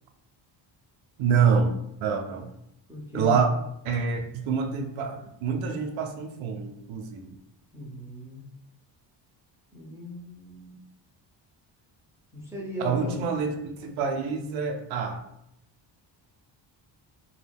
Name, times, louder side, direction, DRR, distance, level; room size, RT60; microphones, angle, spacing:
voice 1, 1.2-1.7 2.0-2.5 3.1-3.5 3.8-7.4 12.8-15.2, right 6 dB, 90° right, 5 dB, 0.6 m, -26 dB
voice 2, 2.9-3.4 7.7-8.5 9.7-10.8 12.3-13.1, equal, 5° right, -4 dB, 0.5 m, -38 dB
2.4 x 2.1 x 3.4 m, 0.80 s
cardioid pair, 170°, 45 cm